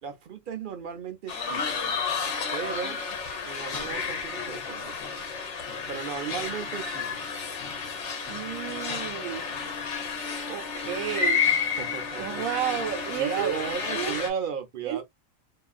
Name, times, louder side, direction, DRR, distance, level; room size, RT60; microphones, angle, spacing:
voice 1, 0.0-2.0 2.5-3.0 3.4-5.0 5.9-7.2 8.2-8.4 11.8-12.4 13.2-15.0, right 7 dB, 60° right, 0.5 m, -35 dB
sound 1, 1.3-14.3, left 5 dB, 60° left, 1.1 m, -31 dB
voice 2, 8.3-9.4 10.5-11.4 12.2-13.6 13.9-14.2 14.8-15.0, right 10 dB, 75° right, 1.1 m, -32 dB
2.7 x 2.4 x 2.3 m
omnidirectional pair, 1.4 m